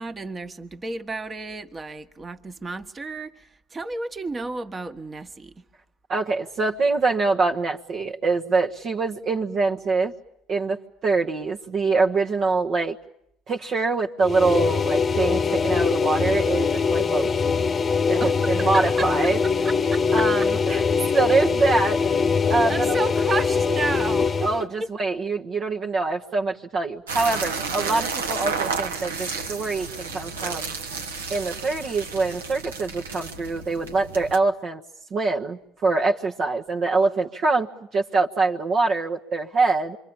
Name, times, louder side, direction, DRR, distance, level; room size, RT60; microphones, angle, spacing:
voice 1, 0.0-3.3 3.7-5.6 18.2-19.0 19.6-20.0 22.4-24.9, right 3 dB, 25° right, 1.5 m, -32 dB
voice 2, 6.1-10.1 10.5-13.0 13.5-17.3 18.1-19.4 20.1-20.8 21.1-22.0 22.5-23.0 24.4-30.7 31.3-34.8 35.1-40.0, right 3 dB, 45° right, 1.3 m, -24 dB
sound 1, 14.2-24.6, left 5 dB, 30° left, 1.0 m, -22 dB
sound 2, 27.1-34.4, right 5 dB, 75° right, 1.4 m, -31 dB
27.5 x 24.5 x 8.8 m
figure-of-eight pair, 60°, 0 cm